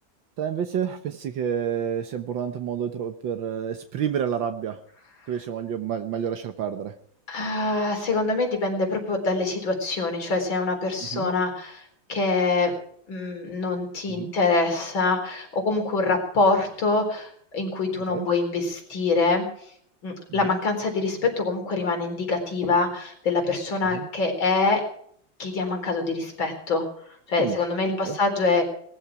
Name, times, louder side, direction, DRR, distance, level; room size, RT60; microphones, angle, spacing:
voice 1, 0.4-4.8 5.3-7.0 11.1-11.3 14.1-14.3 18.1-18.3 20.3-20.6 23.9-24.1 27.4-27.6 27.9-28.2, right 8 dB, 80° right, 7 dB, 1.8 m, -29 dB
voice 2, 7.3-11.8 12.1-12.7 13.1-19.5 20.0-24.8 25.4-26.8 27.3-28.6, left 3 dB, 80° left, 3 dB, 4.8 m, -25 dB
19.5 x 14.5 x 4.8 m, 0.63 s
omnidirectional pair, 2.1 m